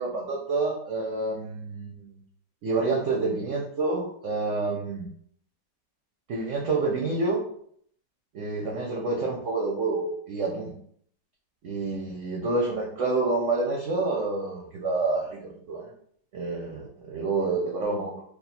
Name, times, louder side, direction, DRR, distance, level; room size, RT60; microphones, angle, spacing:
voice 1, 0.0-2.2 2.6-5.1 6.3-7.4 8.3-10.7 11.6-15.9 16.3-18.2, right 3 dB, 65° right, -1 dB, 0.8 m, -28 dB
3.5 x 2.4 x 4.2 m, 0.63 s
omnidirectional pair, 1.9 m